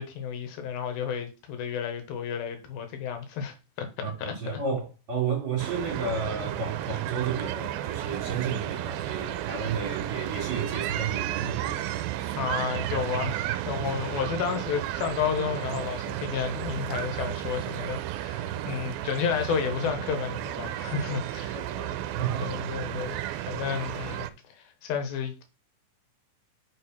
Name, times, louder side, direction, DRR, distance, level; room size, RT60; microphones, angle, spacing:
voice 1, 0.0-4.3 12.4-13.4 13.7-21.6 22.4-24.3 24.5-25.4, left 7 dB, 85° left, 3.2 m, -31 dB
voice 2, 4.0-12.3 18.3-18.9 21.4-22.7, right 5 dB, 40° right, 3.2 m, -33 dB
sound 1, 5.6-24.3, right 13 dB, 90° right, 2.4 m, -33 dB
6.3 x 4.6 x 5.5 m
omnidirectional pair, 4.1 m